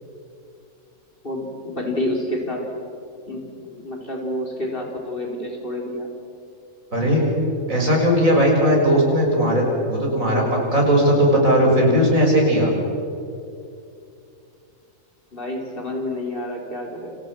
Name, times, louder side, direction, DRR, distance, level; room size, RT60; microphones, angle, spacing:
voice 1, 1.2-2.7 3.3-6.1 15.3-17.2, left 1 dB, 40° left, 1 dB, 4.4 m, -29 dB
voice 2, 6.9-7.3 7.7-12.7, equal, 80° right, -1 dB, 7.2 m, -18 dB
29.5 x 27.5 x 6.3 m, 2.6 s
omnidirectional pair, 1.4 m